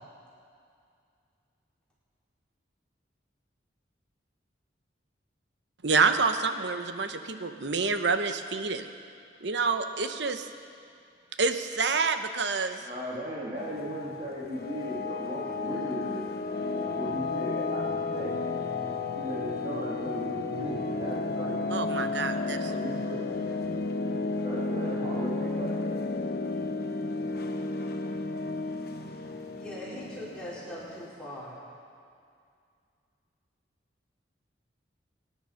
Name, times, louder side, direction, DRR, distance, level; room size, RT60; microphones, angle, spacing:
voice 1, 5.8-8.9 9.4-10.5 11.4-12.8 21.7-22.7, right 4 dB, 70° right, 8 dB, 0.9 m, -27 dB
voice 2, 12.8-16.2 16.8-17.8 18.1-18.3 19.2-22.1 22.6-23.6 24.4-26.0, right 1 dB, 30° right, -7 dB, 2.5 m, -37 dB
sound 1, 13.6-31.1, left 3 dB, 55° left, 1.0 m, -32 dB
voice 3, 29.5-31.6, equal, 5° left, -10 dB, 4.9 m, -40 dB
24.0 x 10.0 x 5.7 m, 2.3 s
head